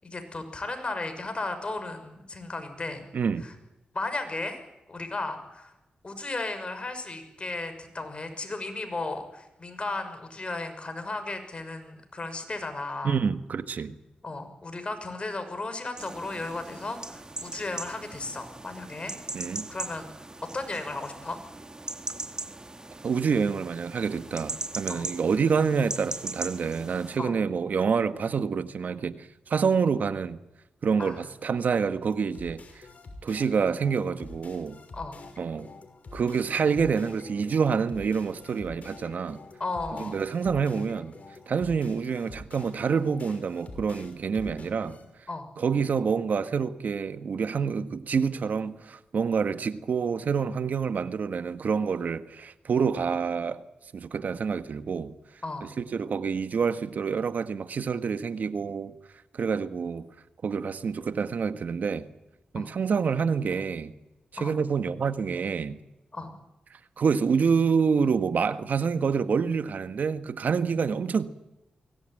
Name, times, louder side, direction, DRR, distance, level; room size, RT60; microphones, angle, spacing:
voice 1, 0.0-3.0 3.4-3.5 3.9-4.6 4.9-5.7 6.0-13.1 14.2-19.1 19.7-21.4 24.9-25.1 27.2-27.3 31.0-31.2 34.9-35.2 39.6-40.2 45.3-45.5 55.4-55.7 62.5-62.7 64.4-64.5 66.1-66.3, left 2 dB, 40° left, 6.4 m, -35 dB
voice 2, 3.1-3.5 13.0-13.9 19.3-19.7 23.0-30.4 30.8-32.9 33.2-34.8 35.4-35.7 36.1-39.4 40.0-41.1 41.5-45.0 45.6-53.6 53.9-55.1 55.6-58.9 59.3-60.0 60.4-62.1 62.5-63.9 64.3-65.8 66.7-71.3, right 6 dB, 70° right, 1.6 m, -27 dB
sound 1, 16.0-27.2, right 2 dB, 25° right, 1.6 m, -39 dB
sound 2, 32.1-45.0, left 2 dB, 55° left, 6.0 m, -47 dB
23.5 x 17.5 x 9.3 m
cardioid pair, 50°, 3 cm